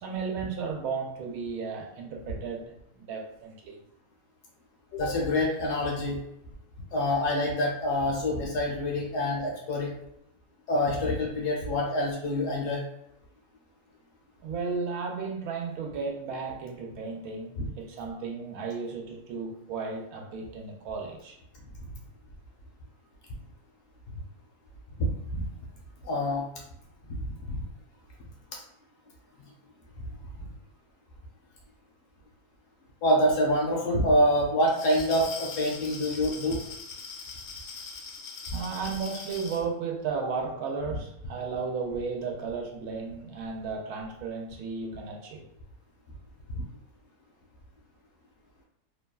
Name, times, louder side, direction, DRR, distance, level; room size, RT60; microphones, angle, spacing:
voice 1, 0.0-3.8 14.4-21.4 38.5-45.5, right 5 dB, 85° right, 2 dB, 1.1 m, -34 dB
voice 2, 4.9-6.2 6.9-9.9 10.7-12.8 17.6-17.7 25.0-25.5 26.0-26.4 27.1-27.2 27.5-27.6 30.4-30.5 33.0-36.6 46.5-46.7, left 1 dB, 65° left, -2 dB, 1.1 m, -26 dB
Glass, 34.6-39.6, left 5 dB, 85° left, 1.1 m, -41 dB
2.9 x 2.2 x 2.2 m, 0.79 s
omnidirectional pair, 1.5 m